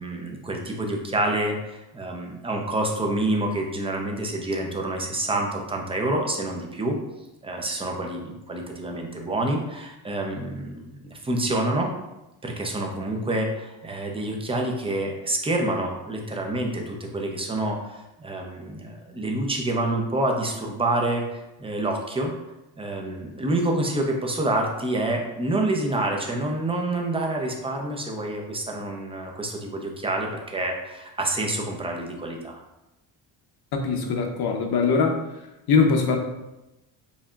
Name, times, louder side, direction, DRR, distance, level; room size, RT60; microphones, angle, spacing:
voice 1, 0.0-7.0 7.4-11.9 12.4-22.3 22.8-32.6, right 1 dB, 10° right, 1 dB, 0.6 m, -27 dB
voice 2, 33.7-35.2 35.7-36.2, left 5 dB, 55° left, 3 dB, 0.9 m, -21 dB
7.1 x 2.8 x 2.4 m, 0.95 s
cardioid pair, 135°, 46 cm